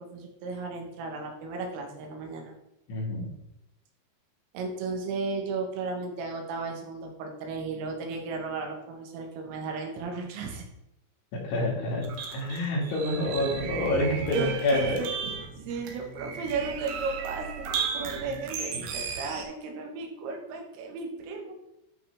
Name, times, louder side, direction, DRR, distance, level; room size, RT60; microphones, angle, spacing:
voice 1, 0.0-2.5 4.5-10.7 14.3-17.7 17.9-21.6, right 4 dB, 85° right, 2 dB, 4.1 m, -35 dB
voice 2, 2.9-3.3 11.3-15.0, left 1 dB, 70° left, -3 dB, 4.8 m, -28 dB
sound 1, 12.0-19.4, right 6 dB, 70° right, 2.5 m, -35 dB
12.0 x 5.7 x 3.5 m, 0.87 s
omnidirectional pair, 5.7 m